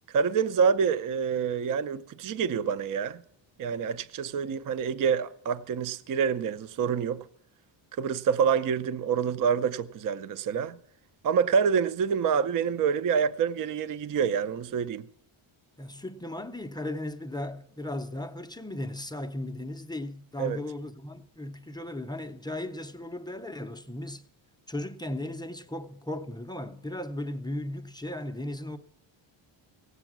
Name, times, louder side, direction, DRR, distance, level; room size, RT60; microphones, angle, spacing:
voice 1, 0.1-3.2 3.6-7.3 8.0-10.8 11.2-15.1 20.4-20.6, right 6 dB, 40° right, 0.5 m, -27 dB
voice 2, 15.8-24.2 24.7-28.8, left 1 dB, 10° left, 0.4 m, -36 dB
16.5 x 8.1 x 6.0 m
cardioid pair, 145°, 50 cm